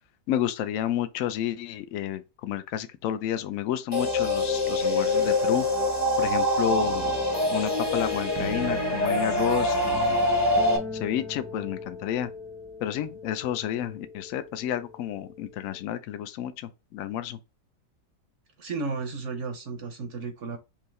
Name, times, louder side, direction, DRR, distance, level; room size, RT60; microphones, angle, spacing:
voice 1, 0.3-5.7 6.2-7.1 7.5-10.2 10.9-12.3 12.8-17.4, left 11 dB, 70° left, 0.8 m, -30 dB
sound 1, 3.9-10.8, left 1 dB, 15° left, 0.7 m, -25 dB
sound 2, 6.8-15.9, left 3 dB, 20° right, 0.4 m, -42 dB
Bass guitar, 8.4-12.4, right 7 dB, 80° right, 1.3 m, -41 dB
voice 2, 18.6-20.6, right 4 dB, 60° right, 0.9 m, -33 dB
5.4 x 2.7 x 3.1 m
omnidirectional pair, 1.8 m